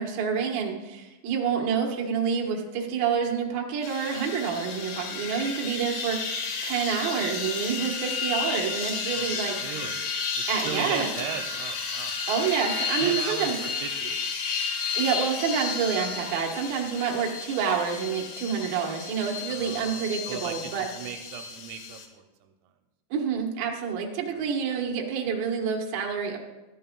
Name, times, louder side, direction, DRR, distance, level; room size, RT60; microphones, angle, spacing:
voice 1, 0.0-6.2 6.6-9.6 10.5-11.1 12.3-13.6 14.9-20.9 23.1-26.4, right 6 dB, 65° right, 0 dB, 2.9 m, -28 dB
sound 1, 3.8-22.1, left 5 dB, 65° left, 2.3 m, -32 dB
voice 2, 9.1-10.0 10.3-12.2 13.0-14.2 19.5-22.5 24.3-24.5, right 8 dB, 85° right, 5 dB, 3.1 m, -38 dB
18.0 x 12.5 x 2.3 m, 1.1 s
omnidirectional pair, 5.2 m